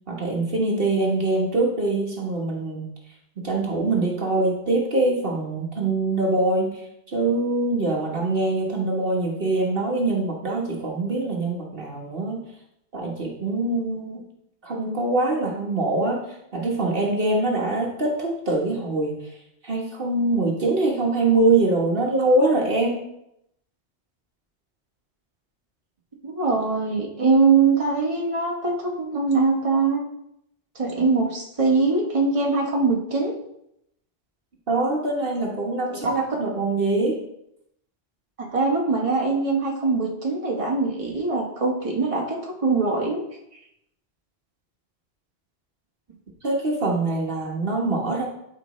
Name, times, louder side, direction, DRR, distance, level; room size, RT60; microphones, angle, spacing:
voice 1, 0.1-2.9 3.4-6.8 7.1-12.4 12.9-14.2 14.6-16.2 16.5-19.1 19.6-23.0 34.7-37.2 46.4-48.3, right 2 dB, 55° right, -1 dB, 1.5 m, -23 dB
voice 2, 26.2-30.0 30.7-33.3 35.9-36.0 38.4-43.2, right 4 dB, 30° right, -2 dB, 1.4 m, -22 dB
12.0 x 5.1 x 3.1 m, 0.79 s
omnidirectional pair, 1.1 m